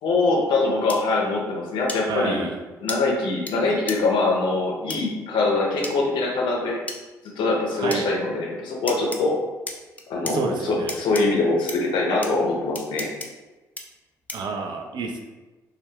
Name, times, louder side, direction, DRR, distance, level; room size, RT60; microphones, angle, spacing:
voice 1, 0.0-2.5 2.8-6.8 7.4-9.4 10.1-13.1, left 3 dB, 60° left, -1 dB, 0.6 m, -23 dB
sound 1, 0.9-1.0 1.9-2.0 2.9-3.0 3.5-3.6 3.9-4.0 4.9-5.0 5.8-5.9 6.9-7.0 7.9-8.0 8.9-9.2 9.7-10.3 10.9-11.2 11.7-11.8 12.2-12.3 12.7-13.3 13.8-13.9 14.3-14.5, left 2 dB, 15° left, 0.4 m, -32 dB
voice 2, 2.1-2.6 7.8-8.1 10.2-11.0 14.3-15.2, right 4 dB, 55° right, 3 dB, 0.4 m, -29 dB
2.3 x 2.1 x 3.3 m, 1.2 s
hypercardioid pair, 45°, 9 cm